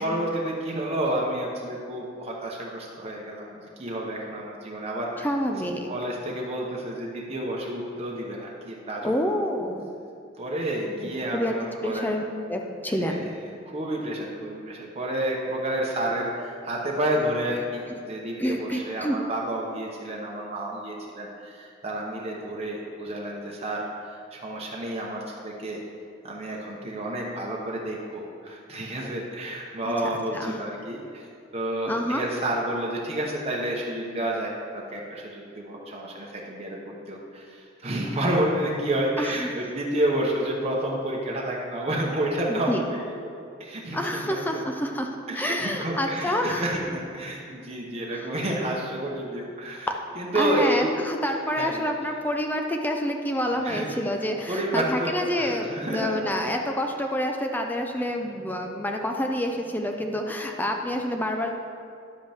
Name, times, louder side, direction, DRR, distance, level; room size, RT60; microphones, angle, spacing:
voice 1, 0.0-5.3 5.9-9.1 10.4-12.1 13.0-25.8 26.2-31.3 31.5-43.3 43.6-44.6 45.3-49.9 50.2-50.9 51.6-51.8 53.6-53.9 54.5-56.1, right 1 dB, 35° right, -3 dB, 0.9 m, -30 dB
voice 2, 5.2-5.9 9.0-9.9 10.9-11.5 11.8-13.3 18.4-19.2 30.3-30.6 31.9-32.2 39.2-39.5 42.5-42.9 43.9-46.7 48.1-48.3 50.3-61.5, equal, 10° left, 3 dB, 0.5 m, -28 dB
10.5 x 7.8 x 3.5 m, 2.5 s
head